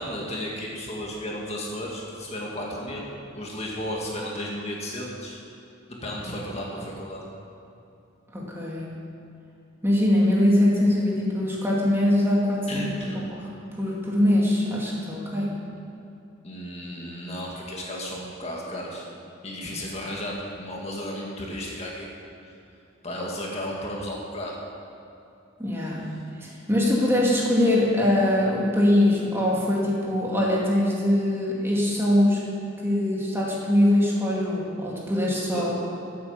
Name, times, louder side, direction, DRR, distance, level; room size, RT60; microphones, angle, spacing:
voice 1, 0.0-5.4 6.0-7.2 12.7-13.2 16.4-19.1 19.4-22.1 22.4-22.5 23.0-24.6 35.5-35.6, equal, 30° left, -3 dB, 2.1 m, -33 dB
voice 2, 8.3-8.9 9.8-12.9 13.3-13.5 13.8-15.6 25.6-26.0 26.4-32.4 32.8-35.7, left 1 dB, 10° right, -4 dB, 2.4 m, -22 dB
15.0 x 8.6 x 7.2 m, 2.8 s
head